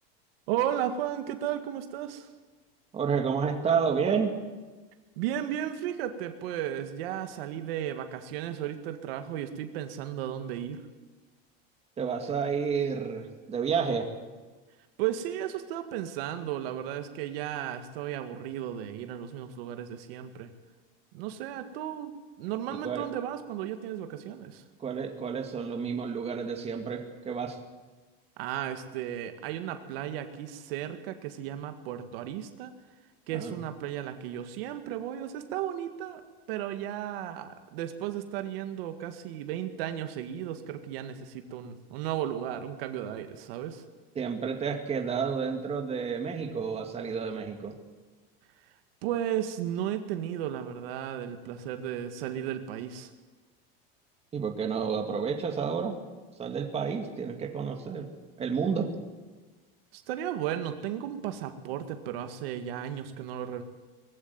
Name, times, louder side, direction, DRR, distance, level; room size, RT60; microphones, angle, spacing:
voice 1, 0.5-2.3 5.2-10.8 15.0-20.5 21.1-24.6 28.4-32.7 33.3-36.2 36.5-43.8 49.0-53.1 59.9-63.6, right 11 dB, 75° right, 7 dB, 2.0 m, -34 dB
voice 2, 2.9-4.3 12.0-14.1 22.7-23.1 24.8-27.6 33.3-33.6 44.2-47.7 54.3-55.9 56.4-58.1 58.4-58.9, right 6 dB, 20° right, 4 dB, 2.2 m, -30 dB
20.0 x 15.5 x 9.5 m, 1.3 s
supercardioid pair, 155°, 30 cm